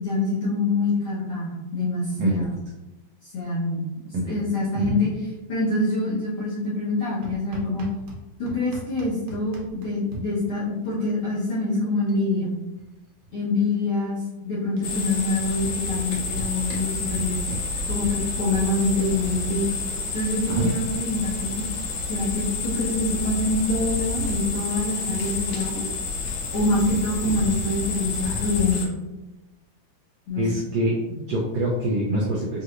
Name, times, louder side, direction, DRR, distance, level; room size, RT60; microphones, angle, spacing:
voice 1, 0.0-2.5 3.3-3.8 4.2-5.1 5.5-7.9 8.4-12.5 13.3-17.4 17.9-19.7 20.1-21.6 22.0-25.9 26.5-28.9 30.3-30.5, left 2 dB, 60° left, -10 dB, 1.5 m, -25 dB
sound 1, 7.2-8.2 8.5-10.2 11.5-11.6 11.8-12.2 12.5-13.9 14.8-14.9 15.3-18.1, right 3 dB, 70° right, 1.8 m, -38 dB
sound 2, 14.8-28.8, left 4 dB, 75° left, 2.2 m, -30 dB
sound 3, 15.6-24.9, equal, 40° left, 0.7 m, -37 dB
voice 2, 30.4-32.6, right 1 dB, 85° right, -5 dB, 1.4 m, -25 dB
6.1 x 2.7 x 2.5 m, 1.0 s
omnidirectional pair, 3.7 m